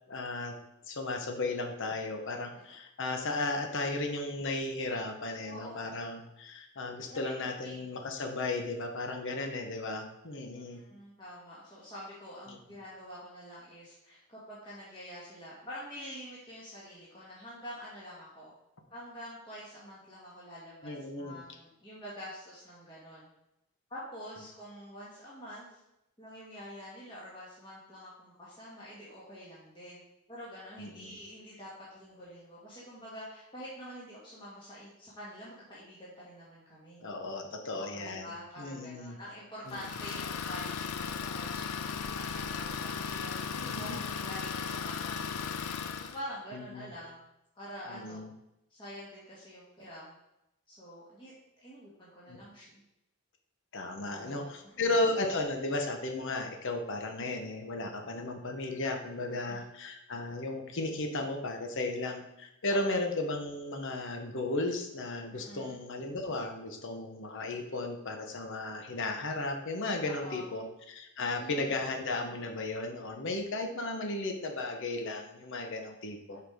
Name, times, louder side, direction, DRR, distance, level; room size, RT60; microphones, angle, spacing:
voice 1, 0.1-0.5 0.9-10.8 12.5-12.6 20.8-21.4 30.8-31.2 37.0-39.2 39.7-39.8 43.5-44.0 46.5-46.9 47.9-48.3 52.3-52.4 53.7-76.4, left 2 dB, 55° left, 4 dB, 1.0 m, -35 dB
voice 2, 5.4-5.9 7.1-7.9 9.4-9.5 10.7-18.5 18.9-23.3 23.9-25.8 26.2-30.0 30.3-37.0 37.7-47.2 47.6-48.2 48.7-50.1 50.7-51.3 51.6-52.8 54.0-54.8 59.3-59.7 62.7-62.9 65.3-65.8 70.0-70.5 71.2-71.7, equal, 20° left, -8 dB, 1.7 m, -47 dB
Idling, 39.7-46.2, left 6 dB, 85° left, 0.5 m, -36 dB
5.8 x 4.8 x 5.0 m, 0.85 s
head